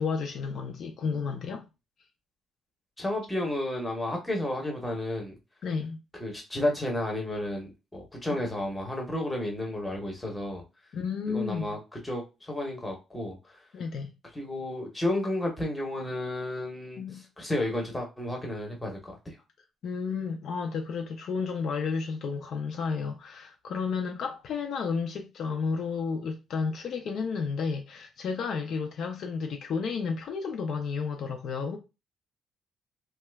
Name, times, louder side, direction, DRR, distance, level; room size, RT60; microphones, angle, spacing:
voice 1, 0.0-1.6 5.6-6.0 8.3-8.4 10.9-11.8 13.7-14.1 17.0-17.2 19.8-31.8, left 5 dB, 50° left, 0.4 m, -32 dB
voice 2, 3.0-5.3 6.2-10.6 11.3-13.6 14.3-17.0 17.4-19.3, left 1 dB, 10° left, 0.8 m, -32 dB
2.8 x 2.2 x 3.3 m
cardioid pair, 165°, 0 cm